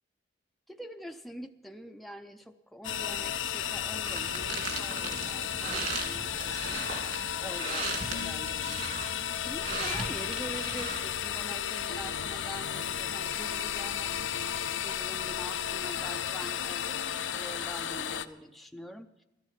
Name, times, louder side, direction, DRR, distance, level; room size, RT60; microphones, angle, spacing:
voice 1, 0.7-6.9 7.4-14.3 14.8-19.2, equal, ahead, 4 dB, 0.5 m, -45 dB
sound 1, 2.8-18.3, left 9 dB, 85° left, 0.6 m, -34 dB
sound 2, 4.0-11.0, right 3 dB, 50° right, 2.9 m, -38 dB
14.0 x 13.5 x 5.7 m, 0.96 s
head